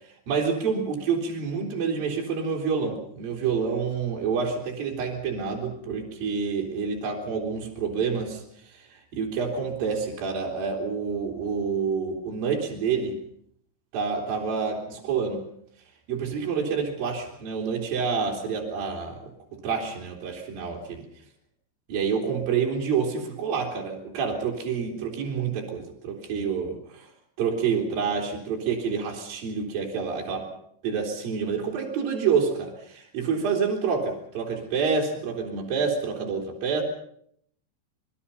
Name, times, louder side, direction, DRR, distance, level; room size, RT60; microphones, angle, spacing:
voice 1, 0.3-8.4 8.7-13.2 13.9-15.4 16.1-19.2 19.5-21.1 21.9-27.1 27.4-30.5 30.8-36.8, right 6 dB, 55° right, -1 dB, 4.9 m, -28 dB
26.0 x 21.5 x 5.6 m, 0.67 s
omnidirectional pair, 5.3 m